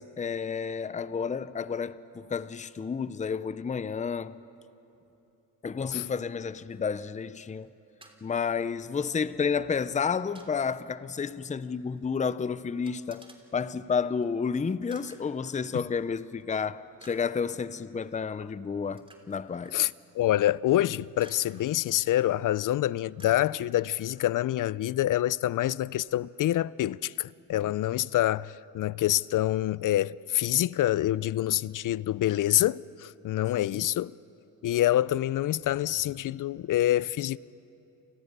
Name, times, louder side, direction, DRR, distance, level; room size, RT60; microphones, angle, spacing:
voice 1, 0.2-4.4 5.6-7.7 8.2-13.2 13.5-19.9 33.5-33.9, left 6 dB, 20° left, 0.7 m, -31 dB
sound 1, 6.7-6.8 7.1-7.7 8.0-8.2 9.5-9.6 9.9-10.5 11.6-11.7 12.0-12.1 12.9-13.4 14.2-14.3 14.6-14.7 14.9-15.6 16.4-16.5 17.0-17.4 18.0-18.2 19.0-19.8 20.5-20.7 21.2-21.6 22.2-22.5 23.2-24.4 25.3-25.4 25.9-26.0, right 2 dB, 15° right, 3.4 m, -56 dB
voice 2, 19.7-34.1 34.6-37.4, left 13 dB, 55° left, 0.5 m, -26 dB
30.0 x 25.0 x 6.8 m
cardioid pair, 80°, 39 cm